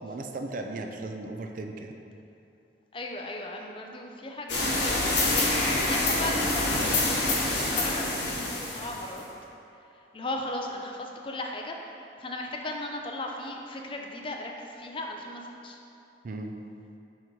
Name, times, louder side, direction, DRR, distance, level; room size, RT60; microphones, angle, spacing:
voice 1, 0.0-1.9 16.2-16.5, right 2 dB, 45° right, 4 dB, 0.3 m, -36 dB
voice 2, 2.9-5.0 5.3-9.2 10.1-15.8, left 1 dB, 30° left, 1 dB, 0.4 m, -37 dB
sound 1, 4.5-9.2, left 2 dB, 70° left, 1.1 m, -26 dB
6.2 x 3.0 x 5.1 m, 2.7 s
head